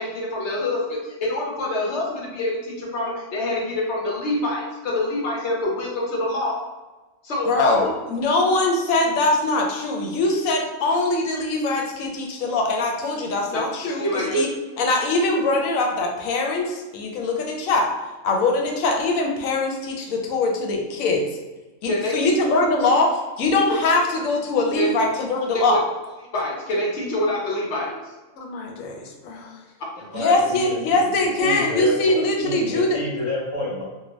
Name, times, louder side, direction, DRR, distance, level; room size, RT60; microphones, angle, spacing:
voice 1, 0.0-6.6 7.2-7.9 13.8-14.4 21.8-22.2 24.7-24.9 25.5-25.8 26.3-27.9 30.3-30.4, left 1 dB, 60° left, -3 dB, 1.0 m, -26 dB
voice 2, 7.5-14.5 14.8-17.9 18.2-21.3 21.8-25.8 28.4-29.5 30.1-33.0, left 2 dB, 85° left, 1 dB, 1.0 m, -22 dB
voice 3, 30.0-33.8, left 1 dB, 25° left, -9 dB, 0.9 m, -30 dB
2.8 x 2.2 x 3.0 m, 1.2 s
omnidirectional pair, 1.4 m